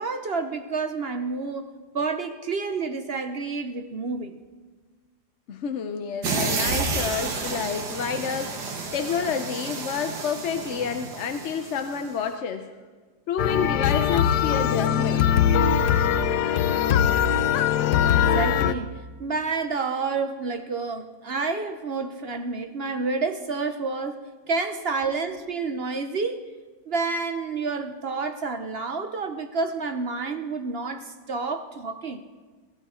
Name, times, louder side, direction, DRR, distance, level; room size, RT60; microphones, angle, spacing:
voice 1, 0.0-1.7 1.9-4.4 18.0-26.4 26.9-32.2, right 4 dB, 50° right, 8 dB, 0.8 m, -29 dB
voice 2, 5.5-12.7 13.3-15.4, left 7 dB, 55° left, 7 dB, 0.9 m, -29 dB
sound 1, 6.2-12.1, right 4 dB, 80° right, 2.1 m, -30 dB
sound 2, 13.4-18.7, left 8 dB, 80° left, 1.2 m, -21 dB
22.0 x 14.0 x 4.3 m, 1.4 s
omnidirectional pair, 1.8 m